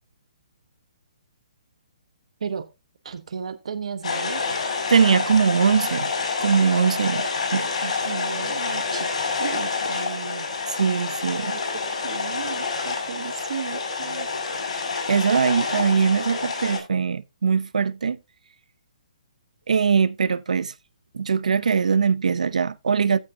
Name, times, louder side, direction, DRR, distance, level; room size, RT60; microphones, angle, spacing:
voice 1, 3.0-4.4 7.8-10.5 11.4-14.3, right 6 dB, 60° right, 1.0 m, -35 dB
sound 1, 4.0-16.8, left 4 dB, 65° left, 5.5 m, -28 dB
voice 2, 4.9-6.1 6.4-7.3 7.5-7.6 10.8-11.5 15.1-18.2 19.7-20.7 21.1-23.2, right 6 dB, 85° right, 0.6 m, -21 dB
14.5 x 6.1 x 2.7 m
hypercardioid pair, 170°, 4 cm